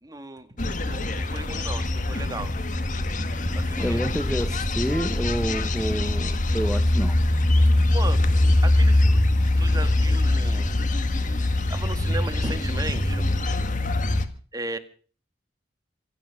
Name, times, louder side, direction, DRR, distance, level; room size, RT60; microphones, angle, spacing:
voice 1, 0.0-2.5 3.5-4.0 7.9-8.2 8.6-10.7 11.1-13.3 14.0-14.1 14.5-14.8, right 2 dB, 20° right, 1.8 m, -36 dB
sound 1, 0.6-14.3, left 1 dB, 40° left, 1.8 m, -23 dB
voice 2, 3.8-7.2, equal, 5° left, 1.2 m, -28 dB
26.0 x 9.2 x 6.0 m
head